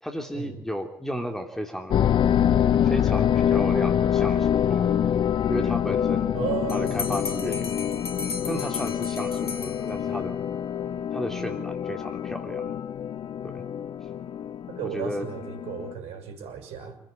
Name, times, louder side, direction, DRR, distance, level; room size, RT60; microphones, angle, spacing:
voice 1, 0.0-2.0 2.8-5.0 5.5-6.4 6.7-8.1 8.4-10.4 11.1-12.7 13.4-13.6 14.8-15.3, equal, 5° left, 4 dB, 3.4 m, -34 dB
sound 1, 1.9-15.9, left 9 dB, 40° left, 0.9 m, -25 dB
voice 2, 6.3-7.0 14.7-17.0, right 9 dB, 55° right, 7 dB, 6.7 m, -34 dB
Bell, 6.7-10.3, left 4 dB, 90° left, 1.8 m, -36 dB
28.5 x 16.0 x 9.3 m, 0.68 s
hypercardioid pair, 70°, 13 cm